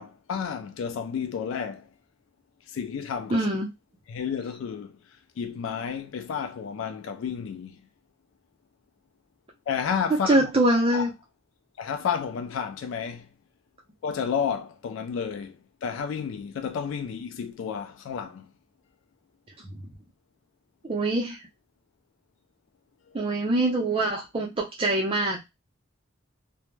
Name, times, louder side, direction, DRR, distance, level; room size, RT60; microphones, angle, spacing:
voice 1, 0.0-1.9 2.7-3.5 4.1-4.9 5.4-7.8 9.7-10.5 10.9-11.0 11.8-13.3 14.0-18.5, left 7 dB, 70° left, 0.3 m, -31 dB
voice 2, 3.3-3.7 10.1-11.1 20.8-21.4 23.1-25.4, right 1 dB, 25° right, 0.5 m, -24 dB
2.1 x 2.0 x 3.1 m
head